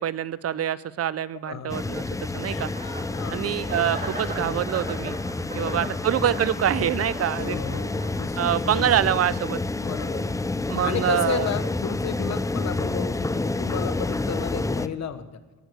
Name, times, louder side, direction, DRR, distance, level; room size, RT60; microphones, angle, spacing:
voice 1, 0.0-2.7 3.3-5.2 5.5-7.6 8.4-9.6 10.7-11.5, right 10 dB, 50° right, 18 dB, 0.6 m, -25 dB
voice 2, 1.4-2.0 3.2-3.5 5.5-6.0 7.4-8.9 9.8-15.3, left 7 dB, 60° left, 11 dB, 1.2 m, -33 dB
sound 1, 1.7-14.9, left 2 dB, 10° left, 0.5 m, -29 dB
Chuckle chortle, 2.4-4.7, left 5 dB, 90° left, 2.8 m, -41 dB
sound 2, 2.7-3.2 3.7-8.5, right 2 dB, 30° right, 3.3 m, -39 dB
16.0 x 6.2 x 6.6 m, 1.3 s
cardioid pair, 70°, 30 cm